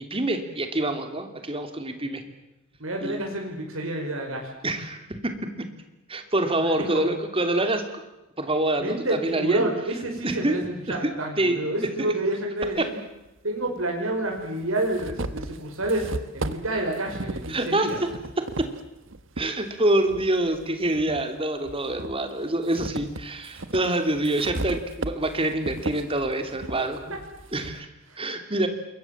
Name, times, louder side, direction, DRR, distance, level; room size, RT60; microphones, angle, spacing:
voice 1, 0.0-2.2 3.0-3.2 4.6-5.3 6.1-7.8 8.4-9.6 10.2-10.5 10.9-11.0 11.4-11.6 12.0-12.1 12.8-12.9 17.5-17.9 18.6-18.7 19.4-27.1 27.5-27.9 28.2-28.7, right 1 dB, 25° right, 7 dB, 3.0 m, -26 dB
voice 2, 2.8-4.5 6.7-7.1 8.8-13.0 13.4-18.0 28.1-28.2, right 1 dB, 90° right, 1 dB, 5.6 m, -29 dB
sound 1, 12.6-12.7 13.8-13.9 14.4-19.5 20.0-21.2 21.7-27.8, right 2 dB, 65° right, 1.5 m, -36 dB
27.0 x 22.5 x 7.4 m, 0.98 s
head